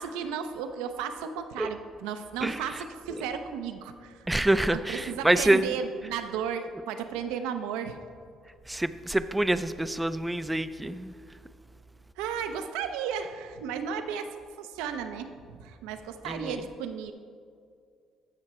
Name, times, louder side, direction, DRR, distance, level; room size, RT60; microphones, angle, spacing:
voice 1, 0.0-4.4 4.7-8.0 12.2-14.3 14.6-17.1, right 7 dB, 90° right, 7 dB, 0.7 m, -34 dB
voice 2, 4.3-5.7 8.7-11.1 16.2-16.6, right 1 dB, 10° right, 12 dB, 0.5 m, -26 dB
14.5 x 5.8 x 4.3 m, 2.3 s
supercardioid pair, 80°, 0 cm